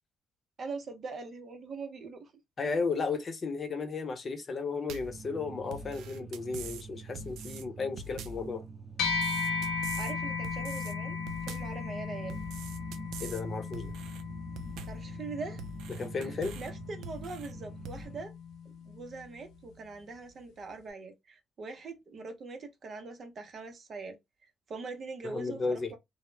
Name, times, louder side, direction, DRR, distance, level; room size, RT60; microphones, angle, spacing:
voice 1, 0.6-2.3 9.6-11.2 11.5-12.4 14.9-15.6 16.2-18.3 18.8-26.0, right 4 dB, 50° right, 0.7 m, -42 dB
voice 2, 2.6-8.6 13.2-13.9 15.9-16.6 25.2-25.9, left 4 dB, 45° left, 0.7 m, -34 dB
sound 1, 4.9-5.2 5.7-6.9 7.2-7.6 8.0-8.5 9.0-10.1 10.4-10.9 11.3-11.8 12.3-13.4 13.7-14.2 14.6-15.1 15.6-16.7 17.0-17.5 17.9-18.1, right 3 dB, 85° right, 0.3 m, -44 dB
sound 2, 5.0-18.2, right 4 dB, ahead, 0.7 m, -46 dB
sound 3, 9.0-18.6, left 5 dB, 85° left, 0.4 m, -36 dB
2.2 x 2.0 x 3.0 m
cardioid pair, 90°, 0 cm